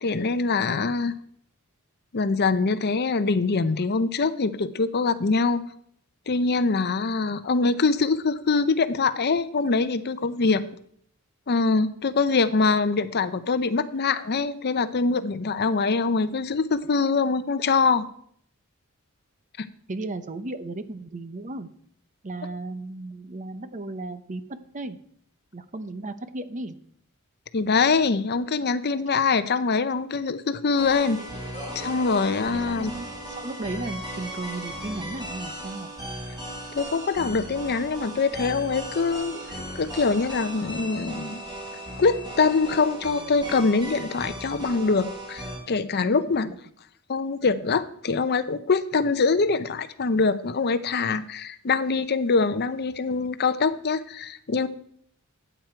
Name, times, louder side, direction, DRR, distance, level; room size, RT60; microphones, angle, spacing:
voice 1, 0.0-1.1 2.1-5.6 6.3-10.6 11.5-18.1 19.6-19.7 27.5-31.2 31.7-32.9 36.7-39.3 39.7-41.4 42.0-46.5 47.1-54.7, left 4 dB, 50° left, 13 dB, 0.6 m, -24 dB
voice 2, 19.9-21.7 22.2-24.4 24.7-25.0 25.5-26.8 32.5-35.9 46.5-46.6, right 2 dB, 35° right, 11 dB, 0.8 m, -35 dB
sound 1, 30.8-45.6, right 1 dB, 20° right, 4.6 m, -37 dB
13.5 x 8.9 x 4.5 m, 0.65 s
head